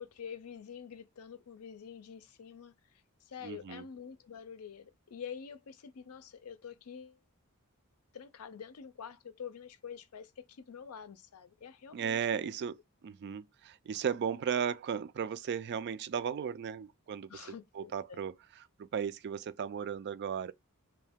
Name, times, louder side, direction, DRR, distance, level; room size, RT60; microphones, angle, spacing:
voice 1, 0.0-2.7 3.2-7.2 8.1-12.5 17.3-18.2, left 7 dB, 75° left, 0.5 m, -47 dB
voice 2, 3.4-3.8 11.9-12.8 13.0-18.3 18.8-20.5, right 7 dB, 50° right, 0.3 m, -35 dB
3.1 x 2.8 x 3.4 m
head